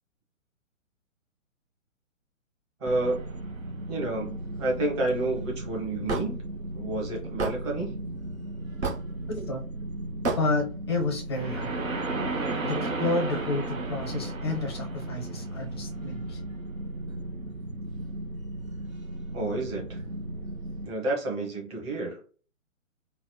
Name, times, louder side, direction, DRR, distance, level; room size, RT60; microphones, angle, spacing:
voice 1, 2.8-3.2 3.9-6.4 6.7-8.0 19.3-20.0 20.8-22.2, right 2 dB, 20° right, -2 dB, 1.0 m, -30 dB
sound 1, 2.8-20.9, right 2 dB, 85° right, 0.8 m, -35 dB
Hammer / Wood, 6.1-6.3 7.4-7.6 8.8-9.1 10.2-10.4, right 3 dB, 55° right, 1.5 m, -28 dB
voice 2, 9.3-9.6 10.4-11.7 12.6-16.4, left 2 dB, 20° left, 1 dB, 0.5 m, -30 dB
4.0 x 2.0 x 2.2 m, 0.38 s
figure-of-eight pair, 130°, 40 cm